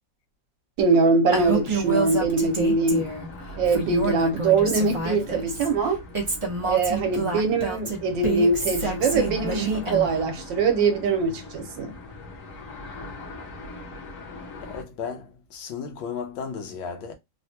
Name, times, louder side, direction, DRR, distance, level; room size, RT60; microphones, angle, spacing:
voice 1, 0.8-3.1 3.6-6.0 6.6-11.9, right 3 dB, 75° right, 1.4 m, -22 dB
sound 1, 1.3-14.8, left 1 dB, 50° left, 1.0 m, -41 dB
Female speech woman speaking, 1.3-3.3 3.7-5.7 6.1-10.3, right 3 dB, 45° right, 0.4 m, -28 dB
voice 2, 14.6-17.1, left 6 dB, 90° left, 1.6 m, -34 dB
3.8 x 2.2 x 2.7 m
omnidirectional pair, 2.1 m